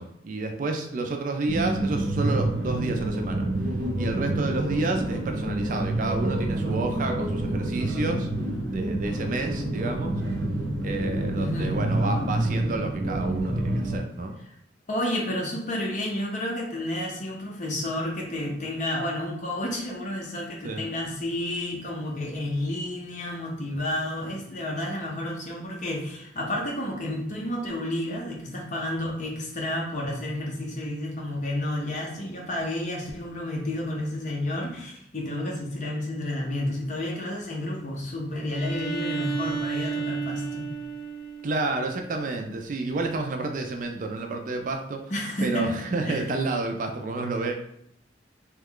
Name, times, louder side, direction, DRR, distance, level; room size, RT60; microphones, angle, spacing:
voice 1, 0.0-3.5 4.0-8.3 8.7-10.2 10.8-14.3 20.6-20.9 41.4-45.0 45.4-47.5, right 3 dB, 45° right, 4 dB, 0.3 m, -30 dB
sound 1, 1.5-14.0, right 1 dB, 85° right, 0.6 m, -28 dB
voice 2, 11.4-11.7 14.9-40.7 45.1-46.2, left 1 dB, 40° left, -2 dB, 0.7 m, -31 dB
Bowed string instrument, 38.5-42.3, right 5 dB, 5° left, 0.6 m, -33 dB
3.0 x 2.2 x 3.6 m, 0.74 s
head